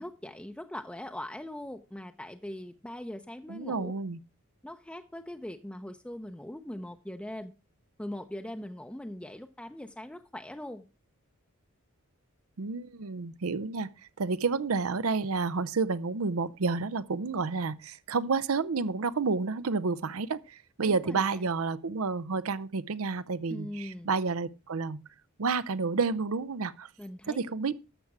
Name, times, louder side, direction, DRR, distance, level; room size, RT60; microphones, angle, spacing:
voice 1, 0.0-3.9 4.6-7.5 8.0-10.8 20.8-21.5 23.5-24.1 27.0-27.4, left 1 dB, 5° left, 0.5 m, -41 dB
voice 2, 3.5-4.2 12.6-13.9 14.2-25.0 25.4-26.9 27.3-27.8, right 4 dB, 85° right, 0.7 m, -30 dB
12.0 x 7.3 x 4.7 m
head